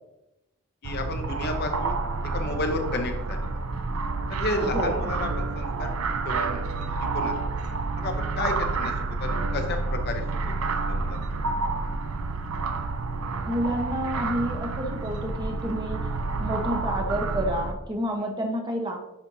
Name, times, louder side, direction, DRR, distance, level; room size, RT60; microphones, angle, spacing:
voice 1, 0.8-1.9 2.3-3.5 4.3-5.9 6.2-7.3 8.0-8.9 9.2-10.2 10.9-11.3, left 2 dB, 50° left, 5 dB, 0.7 m, -32 dB
sound 1, 0.8-17.7, right 3 dB, 85° right, 0.5 m, -29 dB
voice 2, 4.6-5.1 13.5-16.0 16.4-19.0, equal, 20° right, 1 dB, 0.9 m, -29 dB
10.5 x 4.3 x 2.7 m, 0.91 s
head